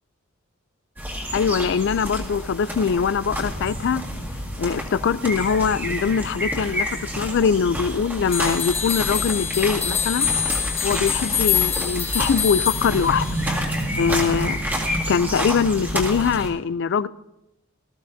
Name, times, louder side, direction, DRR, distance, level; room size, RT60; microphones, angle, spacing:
sound 1, 1.0-16.5, equal, 10° right, 1.8 m, -29 dB
voice 1, 1.3-4.0 4.6-10.3 10.8-13.3 14.0-14.5 15.1-17.1, left 6 dB, 55° left, 0.3 m, -22 dB
sound 2, 8.3-13.5, left 8 dB, 25° left, 1.5 m, -25 dB
19.0 x 14.0 x 2.7 m
head